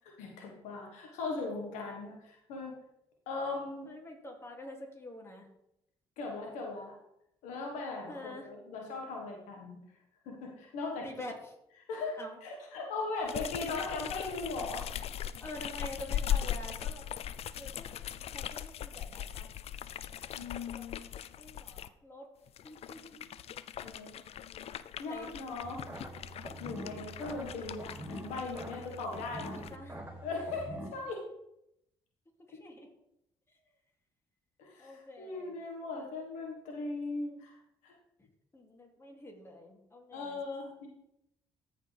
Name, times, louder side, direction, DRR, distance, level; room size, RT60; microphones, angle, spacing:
voice 1, 0.2-2.7 3.3-3.9 6.2-6.9 7.4-9.8 10.2-11.1 11.9-14.8 20.3-21.0 23.8-24.1 24.5-24.7 25.0-25.8 26.6-29.6 30.2-31.2 34.6-37.5 37.8-37.9 40.1-40.9, left 3 dB, 80° left, 0 dB, 1.5 m, -39 dB
voice 2, 3.9-5.5 8.1-8.5 11.0-11.5 12.2-12.4 15.4-17.2 17.5-18.0 18.3-19.5 20.5-22.3 22.6-23.3 25.1-25.5 29.4-29.9 32.4-32.9 33.5-33.6 34.8-35.5 38.5-40.4, left 1 dB, 20° left, 1 dB, 2.6 m, -47 dB
sound 1, 13.3-21.9 22.5-29.8, left 10 dB, 55° left, 0.4 m, -39 dB
sound 2, 25.6-30.9, right 1 dB, 15° right, 3.2 m, -45 dB
14.0 x 4.9 x 3.4 m, 0.81 s
hypercardioid pair, 55°, 12 cm